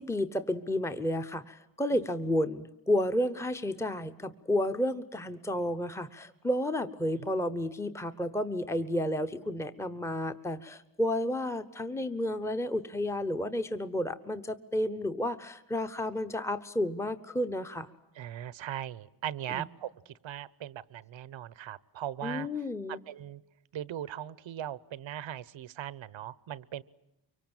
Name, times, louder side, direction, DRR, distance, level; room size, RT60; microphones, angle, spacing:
voice 1, 0.0-17.9 19.5-19.6 22.2-23.0, left 1 dB, 5° left, 10 dB, 0.9 m, -31 dB
voice 2, 18.1-22.5 22.9-23.4 23.7-26.8, right 11 dB, 90° right, 19 dB, 1.0 m, -39 dB
24.5 x 24.5 x 8.9 m, 0.87 s
wide cardioid pair, 145°, 45 cm